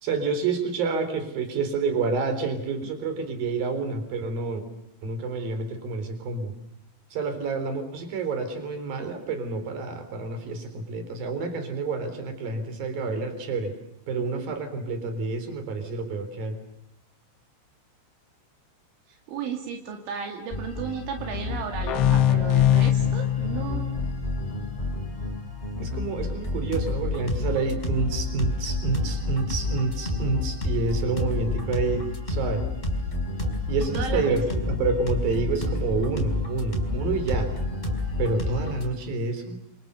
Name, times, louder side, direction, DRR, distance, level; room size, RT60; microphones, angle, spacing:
voice 1, 0.0-4.6 5.0-6.5 7.1-13.7 14.1-16.6 25.8-32.6 33.7-37.5 38.2-39.6, right 4 dB, 50° right, 8 dB, 5.4 m, -28 dB
voice 2, 19.3-24.0 33.8-34.6, right 6 dB, 75° right, 3 dB, 4.6 m, -34 dB
sound 1, 20.5-38.8, left 2 dB, 10° left, 4.5 m, -29 dB
sound 2, 21.9-25.3, left 11 dB, 80° left, 3.7 m, -23 dB
27.5 x 27.0 x 6.9 m, 0.78 s
omnidirectional pair, 5.5 m